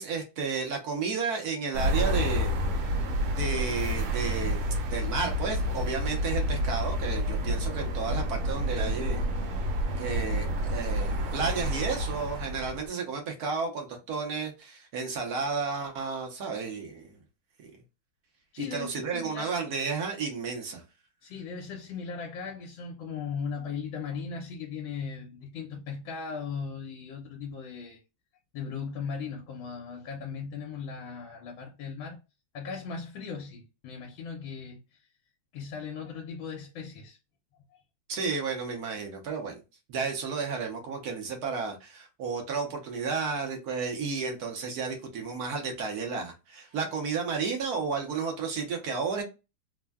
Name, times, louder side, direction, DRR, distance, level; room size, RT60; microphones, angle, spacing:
voice 1, 0.0-2.6 3.3-9.2 10.0-17.2 17.6-17.7 18.6-20.8 38.1-39.6 39.9-49.2, right 5 dB, 65° right, 1.1 m, -32 dB
sound 1, 1.7-12.9, equal, 85° right, 1.5 m, -29 dB
voice 2, 18.5-19.5 21.2-28.0 28.5-32.2 32.5-35.1 35.5-37.2 37.7-37.8, left 5 dB, 80° left, 1.3 m, -38 dB
3.4 x 2.1 x 2.2 m
omnidirectional pair, 2.1 m